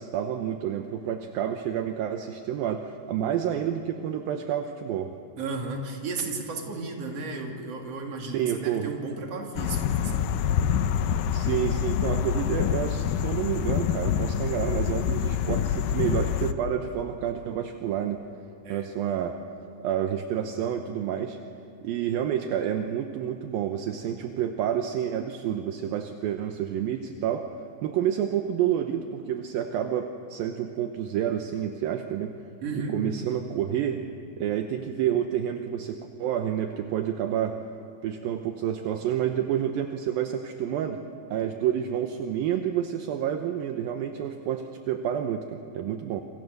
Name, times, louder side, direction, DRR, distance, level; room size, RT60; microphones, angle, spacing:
voice 1, 0.0-5.2 8.2-8.9 11.3-18.2 18.7-19.5 19.8-21.4 21.8-27.5 27.8-32.3 32.9-34.1 34.4-37.6 38.0-41.0 41.3-46.2, right 9 dB, 75° right, 6 dB, 2.3 m, -29 dB
voice 2, 5.4-10.8 18.6-18.9 32.6-33.0, right 3 dB, 40° right, 1 dB, 3.2 m, -34 dB
sound 1, 9.6-16.5, left 9 dB, 80° left, 2.0 m, -26 dB
28.5 x 26.0 x 6.7 m, 2.5 s
omnidirectional pair, 5.0 m